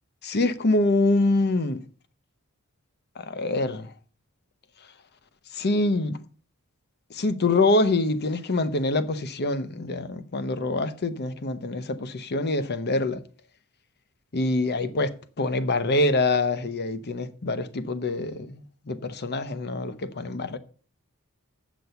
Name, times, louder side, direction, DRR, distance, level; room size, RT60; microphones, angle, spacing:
voice 1, 0.2-1.8 3.2-3.9 5.5-6.2 7.1-13.2 14.3-20.6, left 2 dB, 50° left, 0.8 m, -25 dB
8.0 x 6.1 x 6.9 m
head